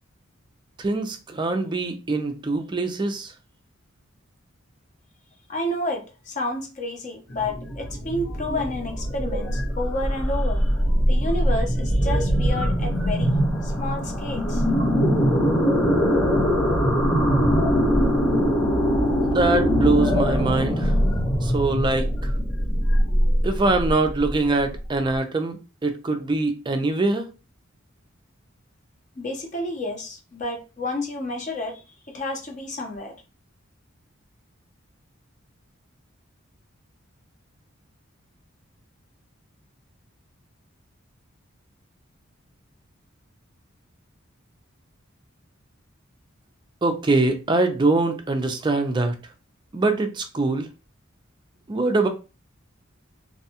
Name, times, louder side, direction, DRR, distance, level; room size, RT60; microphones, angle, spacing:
voice 1, 0.8-3.3 19.2-20.9 21.4-22.3 23.4-27.3 46.8-49.2 49.7-50.7 51.7-52.1, right 2 dB, 20° right, 0.4 m, -23 dB
voice 2, 5.5-10.6 11.1-14.6 29.2-31.8 32.1-33.1, left 1 dB, 35° left, 0.6 m, -30 dB
sound 1, 7.3-25.1, equal, 70° left, 1.2 m, -22 dB
2.6 x 2.2 x 2.8 m
head